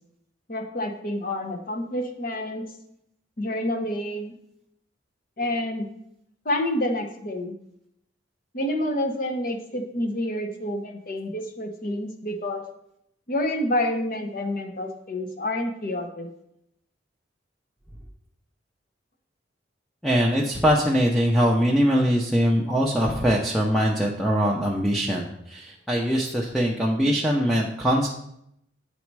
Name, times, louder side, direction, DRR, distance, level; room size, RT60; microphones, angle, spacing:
voice 1, 0.5-2.6 3.4-4.3 5.4-5.9 6.4-7.6 8.5-12.6 13.3-16.3, left 1 dB, 45° left, 4 dB, 0.9 m, -28 dB
voice 2, 20.0-28.1, equal, ahead, -2 dB, 0.6 m, -22 dB
8.4 x 4.2 x 4.6 m, 0.77 s
head